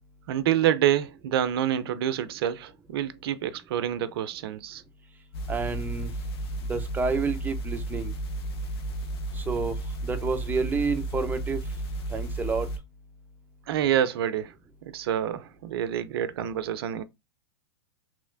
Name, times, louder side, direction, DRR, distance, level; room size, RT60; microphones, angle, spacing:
voice 1, 0.3-4.8 13.7-14.5 14.8-17.0, right 10 dB, 65° right, 0.5 m, -27 dB
sound 1, 5.3-12.8, right 2 dB, 65° left, 0.8 m, -33 dB
voice 2, 5.5-6.1 6.7-8.1 9.3-9.8 10.0-11.6 12.1-12.7, right 4 dB, 15° right, 0.5 m, -29 dB
3.0 x 3.0 x 2.5 m
hypercardioid pair, 105°, 14 cm